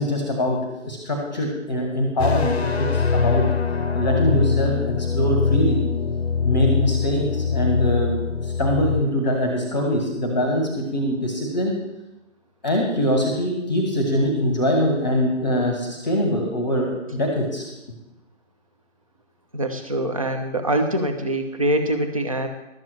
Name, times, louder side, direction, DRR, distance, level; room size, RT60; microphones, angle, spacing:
voice 1, 0.0-3.5 3.9-5.8 6.4-8.2 8.4-11.7 12.6-17.7, equal, 15° left, 1 dB, 1.2 m, -23 dB
sound 1, 2.2-9.0, left 5 dB, 55° left, 0.8 m, -22 dB
voice 2, 19.5-22.5, right 1 dB, 25° right, 5 dB, 0.8 m, -24 dB
12.0 x 7.6 x 6.1 m, 0.95 s
figure-of-eight pair, 155°, 39 cm